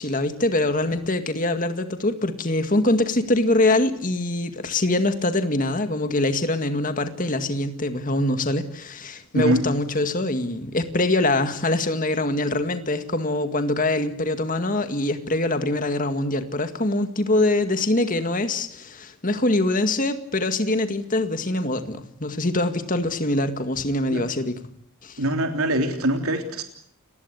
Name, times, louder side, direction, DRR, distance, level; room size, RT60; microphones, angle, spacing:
voice 1, 0.0-24.6 25.0-25.2, left 2 dB, 35° left, 8 dB, 2.0 m, -24 dB
voice 2, 9.3-9.7 24.1-24.2 25.2-26.6, right 1 dB, 75° right, 5 dB, 3.4 m, -23 dB
29.5 x 20.0 x 8.4 m, 0.65 s
head